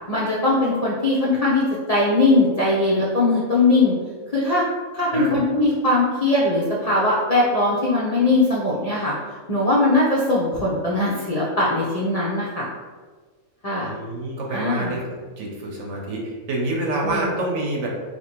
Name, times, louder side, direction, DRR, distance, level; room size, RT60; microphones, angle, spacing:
voice 1, 0.1-3.9 4.3-4.6 4.9-9.1 9.5-12.6 13.6-14.0 14.5-15.0 17.0-17.3, left 2 dB, 50° left, -6 dB, 0.4 m, -20 dB
voice 2, 13.8-15.0 15.4-17.9, right 2 dB, 60° right, -1 dB, 0.9 m, -27 dB
2.8 x 2.5 x 4.3 m, 1.4 s
omnidirectional pair, 1.5 m